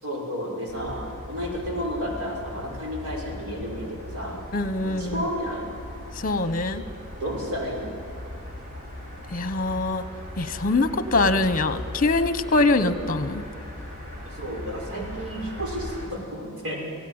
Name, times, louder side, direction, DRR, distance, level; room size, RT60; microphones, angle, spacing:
voice 1, 0.0-4.4 4.8-5.7 7.2-7.9 14.2-16.8, equal, 85° right, 0 dB, 5.8 m, -32 dB
sound 1, 0.7-16.1, left 1 dB, 40° right, 6.0 m, -39 dB
voice 2, 4.5-5.2 6.1-6.9 9.3-10.0 10.4-13.4, left 2 dB, 40° left, 11 dB, 1.2 m, -23 dB
27.5 x 17.5 x 9.0 m, 3.0 s
head